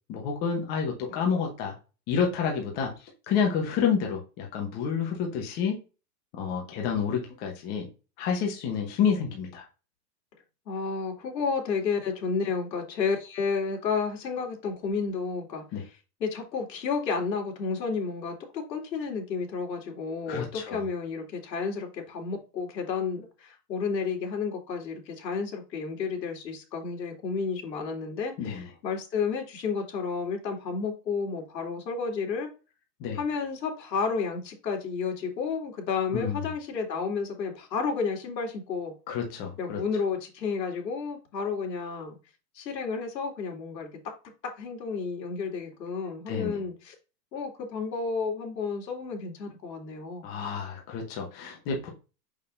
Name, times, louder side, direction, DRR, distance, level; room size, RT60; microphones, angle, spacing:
voice 1, 0.1-1.7 2.1-2.9 3.3-5.8 6.3-7.9 8.2-9.6 15.7-15.8 20.3-20.8 28.4-28.7 33.0-33.2 36.1-36.4 39.1-39.8 46.3-46.6 50.2-51.9, left 6 dB, 20° left, 1.0 m, -29 dB
voice 2, 10.7-15.6 16.2-32.5 33.1-38.9 39.6-42.2 42.5-43.9 44.4-46.9 47.3-50.2, left 5 dB, 85° left, 2.8 m, -31 dB
6.5 x 5.5 x 2.6 m
supercardioid pair, 165°, 49 cm